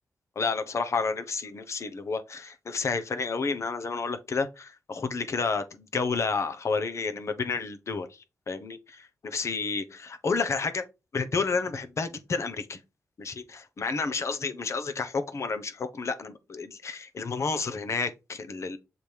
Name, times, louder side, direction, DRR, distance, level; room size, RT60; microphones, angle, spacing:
voice 1, 0.4-8.1 8.5-10.8 11.1-12.8 13.2-18.8, left 4 dB, 55° left, 1.0 m, -30 dB
7.2 x 3.4 x 4.6 m
cardioid pair, 75°, 6 cm